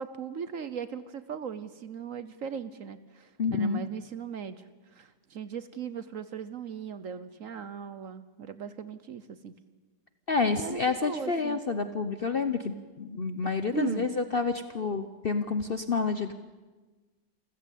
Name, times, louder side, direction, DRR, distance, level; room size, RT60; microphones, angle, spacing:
voice 1, 0.0-9.5 10.4-11.6 13.7-14.1, right 7 dB, 55° right, 13 dB, 1.1 m, -38 dB
voice 2, 3.4-3.8 10.3-16.3, left 4 dB, 45° left, 9 dB, 0.8 m, -29 dB
28.5 x 15.0 x 8.4 m, 1.3 s
omnidirectional pair, 1.9 m